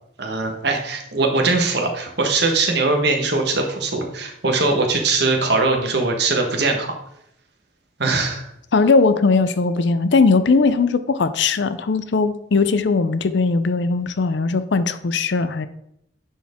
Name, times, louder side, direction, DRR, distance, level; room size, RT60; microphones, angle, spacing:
voice 1, 0.2-6.9 8.0-8.5, right 3 dB, 55° right, 2 dB, 1.2 m, -21 dB
voice 2, 8.7-15.7, left 4 dB, 60° left, 12 dB, 0.5 m, -19 dB
10.0 x 4.4 x 3.6 m, 0.76 s
head